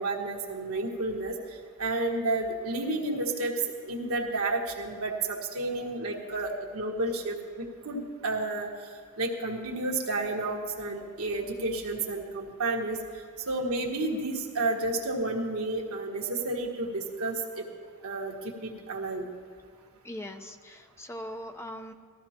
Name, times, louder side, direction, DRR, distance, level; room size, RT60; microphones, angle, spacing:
voice 1, 0.0-1.3 1.8-3.5 3.9-8.7 9.2-13.0 13.5-17.6 18.0-19.2, right 2 dB, 70° right, 0 dB, 1.6 m, -31 dB
voice 2, 20.0-21.9, left 1 dB, 10° left, 6 dB, 0.6 m, -41 dB
19.5 x 14.5 x 2.9 m, 2.1 s
head